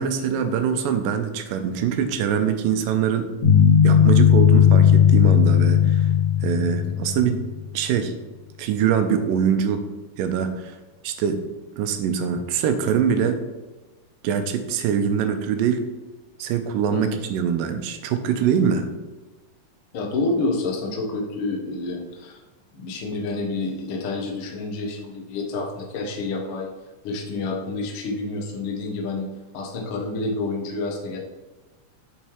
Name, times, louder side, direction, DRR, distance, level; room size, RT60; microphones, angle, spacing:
voice 1, 0.0-3.3 3.8-6.1 6.4-7.4 7.7-8.1 8.6-9.8 10.2-10.8 11.0-11.4 11.8-13.4 14.2-15.8 16.4-18.9, right 7 dB, 80° right, 7 dB, 2.2 m, -23 dB
sound 1, 3.4-7.6, left 8 dB, 55° left, 2.7 m, -16 dB
voice 2, 19.9-22.4 22.7-26.7 27.0-29.3 29.5-31.2, left 3 dB, 80° left, 1 dB, 1.2 m, -28 dB
7.0 x 6.4 x 3.1 m, 1.2 s
omnidirectional pair, 4.1 m